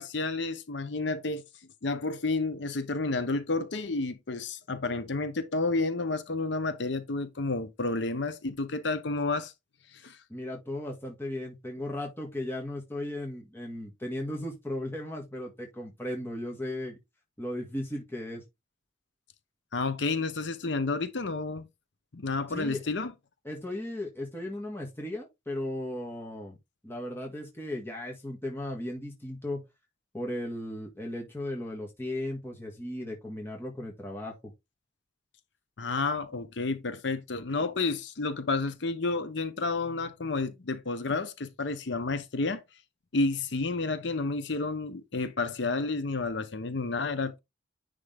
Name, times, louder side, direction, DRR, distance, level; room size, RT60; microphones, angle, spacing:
voice 1, 0.0-1.4 1.8-9.5 9.9-10.2 19.7-21.7 22.1-23.1 35.8-42.6 43.1-47.4, left 3 dB, 65° left, 0.8 m, -30 dB
voice 2, 10.3-17.0 17.4-18.4 22.5-22.8 23.5-26.6 26.8-29.6 30.1-34.5, left 1 dB, 10° left, 1.8 m, -36 dB
9.8 x 3.6 x 3.5 m
head